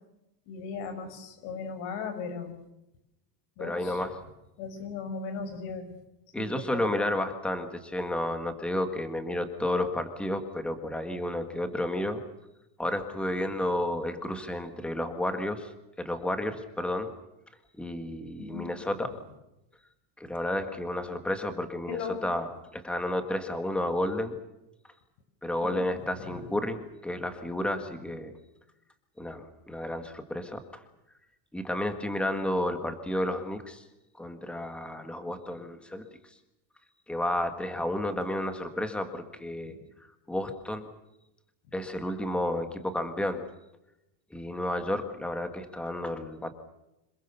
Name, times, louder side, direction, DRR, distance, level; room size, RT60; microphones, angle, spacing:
voice 1, 0.5-2.5 3.6-4.0 4.6-5.9 6.4-6.9 13.6-13.7 18.4-18.7 19.1-19.2 21.9-22.2 25.6-26.5 27.9-28.0 35.6-35.7 39.6-39.8 41.7-41.8, left 5 dB, 60° left, 9 dB, 6.2 m, -38 dB
voice 2, 3.6-4.1 6.3-12.2 12.8-15.7 16.0-17.1 17.8-19.1 20.2-24.4 25.4-28.3 29.2-30.8 31.5-33.8 34.2-36.0 37.1-39.7 40.3-40.9 41.7-43.4 44.3-46.5, left 1 dB, ahead, 7 dB, 1.7 m, -31 dB
27.0 x 22.0 x 7.0 m, 0.90 s
cardioid pair, 180°, 49 cm